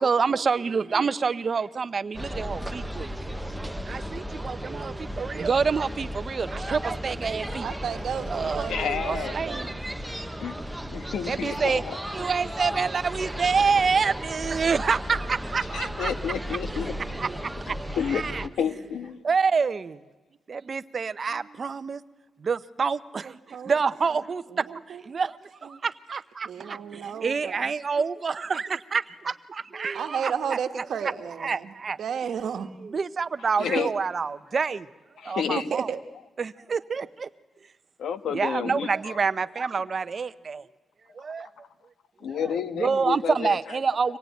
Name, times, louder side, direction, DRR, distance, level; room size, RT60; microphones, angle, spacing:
voice 1, 0.0-3.2 3.8-7.7 8.3-8.7 9.0-9.7 11.3-11.8 12.1-16.1 17.2-18.4 19.2-20.0 20.5-22.0 22.4-24.4 24.9-32.0 32.8-34.9 35.2-35.9 36.4-37.3 38.3-40.7 41.1-41.5 42.3-42.4 42.8-44.2, right 5 dB, 40° right, 13 dB, 0.7 m, -27 dB
sound 1, 2.1-18.5, equal, 5° right, 0.9 m, -35 dB
voice 2, 7.6-9.8 23.2-23.8 24.1-24.2 24.5-25.0 25.6-25.8 26.4-27.7 29.9-31.7 32.0-32.7 33.6-33.9 35.7-36.0, right 7 dB, 70° right, 7 dB, 1.3 m, -33 dB
voice 3, 8.4-9.3 10.4-10.6 10.9-12.0 15.7-16.9 17.7-19.2 33.6-33.9 35.2-35.6 38.0-39.2 42.2-43.6, left 7 dB, 80° left, 11 dB, 1.2 m, -30 dB
25.0 x 18.5 x 9.2 m, 1.2 s
cardioid pair, 120°, 0 cm